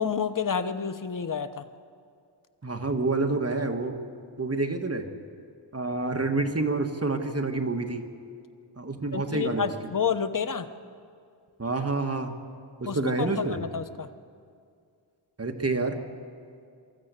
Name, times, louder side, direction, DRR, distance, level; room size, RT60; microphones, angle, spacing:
voice 1, 0.0-1.6 9.1-10.7 12.9-14.1, left 6 dB, 45° left, 10 dB, 1.0 m, -29 dB
voice 2, 2.6-3.9 4.4-5.1 5.7-8.0 8.8-9.7 11.6-12.3 12.8-13.6 15.4-16.0, right 3 dB, 35° right, 5 dB, 1.7 m, -28 dB
24.5 x 13.5 x 8.3 m, 2.3 s
wide cardioid pair, 65°, 43 cm